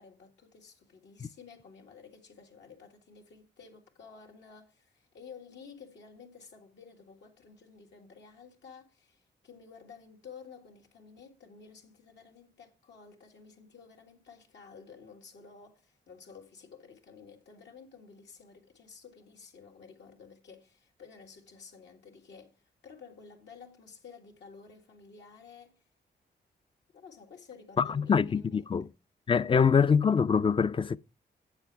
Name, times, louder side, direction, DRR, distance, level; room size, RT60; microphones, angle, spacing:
voice 1, 0.0-22.6 22.8-25.8 26.9-28.8 29.3-29.7, left 5 dB, 85° left, 1.9 m, -52 dB
voice 2, 27.8-28.9 29.3-31.0, left 6 dB, 30° left, 0.4 m, -24 dB
8.4 x 7.1 x 4.5 m
cardioid pair, 80°, 18 cm